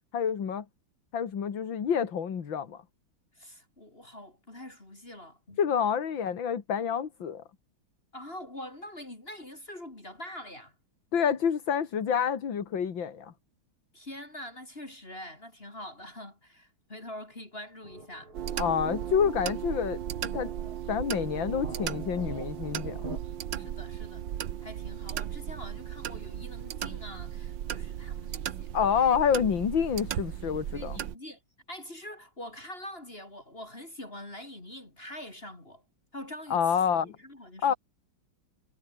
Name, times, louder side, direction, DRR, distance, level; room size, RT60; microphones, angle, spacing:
voice 1, 0.1-0.7 1.1-2.8 5.6-7.4 11.1-13.3 18.6-20.5 20.9-23.0 28.7-31.0 36.5-37.2 37.6-37.7, left 7 dB, 65° left, 2.7 m, -28 dB
voice 2, 3.3-5.6 8.1-10.7 13.9-18.3 23.5-28.7 30.7-31.4 31.7-35.8 36.1-37.8, left 1 dB, 25° left, 3.9 m, -44 dB
sound 1, 17.8-23.2, right 2 dB, 90° right, 9.2 m, -44 dB
sound 2, 18.3-31.2, right 11 dB, 65° right, 1.6 m, -36 dB
omnidirectional pair, 2.3 m